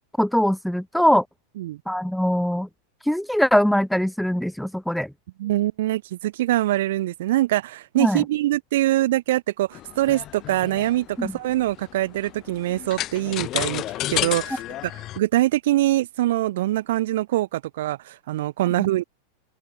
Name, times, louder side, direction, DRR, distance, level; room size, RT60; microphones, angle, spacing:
voice 1, 0.2-1.2 1.9-2.7 3.0-5.1 8.0-8.2 11.2-11.3, equal, ahead, 0.8 m, -21 dB
voice 2, 5.4-13.8 14.1-14.6 15.2-19.0, right 15 dB, 55° right, 2.1 m, -23 dB
sound 1, 9.7-15.2, left 15 dB, 35° left, 4.1 m, -31 dB
open air
figure-of-eight pair, 90°, 0 cm